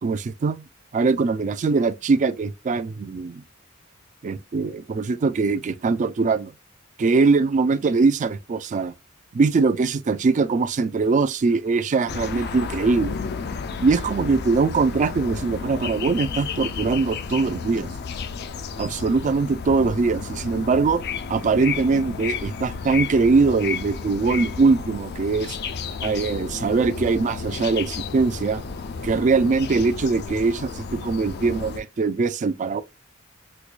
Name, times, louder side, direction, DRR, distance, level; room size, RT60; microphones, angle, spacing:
voice 1, 0.0-0.6 0.9-3.4 4.2-6.5 7.0-8.9 9.3-13.1 13.8-17.9 18.8-21.0 21.3-25.6 26.0-28.6 29.0-32.8, right 4 dB, 35° right, 0.3 m, -22 dB
sound 1, 12.1-31.8, left 5 dB, 50° left, 0.4 m, -32 dB
4.5 x 2.2 x 2.4 m
head